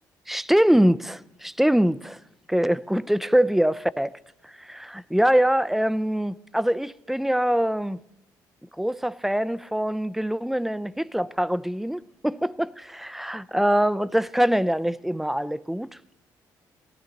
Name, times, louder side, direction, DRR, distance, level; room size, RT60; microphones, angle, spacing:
voice 1, 0.3-2.2 2.5-4.2 4.6-8.0 8.8-12.7 13.0-15.9, equal, 5° right, 0.4 m, -23 dB
18.5 x 14.5 x 3.9 m
cardioid pair, 85°, 8 cm